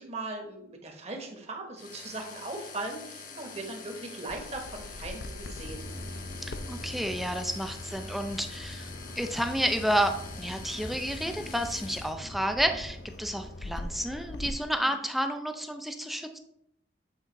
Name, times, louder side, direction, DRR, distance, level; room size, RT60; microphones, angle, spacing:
voice 1, 0.0-5.9 14.2-14.3 14.9-15.0, right 2 dB, 35° right, 2 dB, 1.2 m, -39 dB
sound 1, 1.8-12.1, left 5 dB, 50° left, 0.9 m, -46 dB
Bird vocalization bird call bird song, 4.3-14.5, left 2 dB, 65° left, 0.5 m, -44 dB
sound 2, 5.7-14.2, equal, 85° left, 1.8 m, -44 dB
voice 2, 6.4-8.9 9.2-10.1 10.4-16.4, equal, ahead, 6 dB, 0.4 m, -30 dB
8.0 x 3.5 x 4.1 m, 0.74 s
head